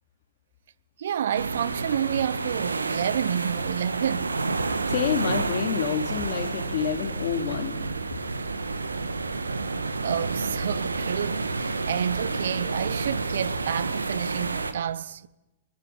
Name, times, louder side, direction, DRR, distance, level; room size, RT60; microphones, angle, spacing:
voice 1, 1.0-4.4 10.0-15.3, right 9 dB, 65° right, 0.9 m, -29 dB
sound 1, 1.3-14.7, right 3 dB, 85° right, 1.6 m, -30 dB
voice 2, 4.9-7.8, left 8 dB, 60° left, 3.4 m, -28 dB
23.0 x 22.0 x 9.0 m
figure-of-eight pair, 105°, 0 cm